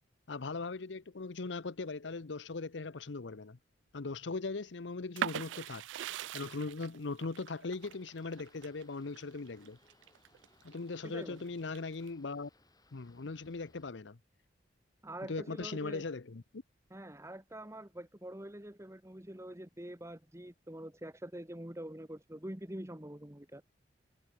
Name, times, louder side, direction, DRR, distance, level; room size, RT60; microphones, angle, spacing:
voice 1, 0.3-3.6 3.9-5.9 6.3-9.8 10.6-12.5 12.9-14.2 15.3-16.6, left 3 dB, 70° left, 0.8 m, -39 dB
sound 1, 5.2-10.8 11.2-12.1, right 10 dB, 75° right, 0.3 m, -41 dB
sound 2, 7.7-13.9, left 2 dB, 20° left, 7.2 m, -67 dB
voice 2, 11.0-11.4 15.0-16.0 16.9-23.6, right 1 dB, 15° right, 1.7 m, -45 dB
head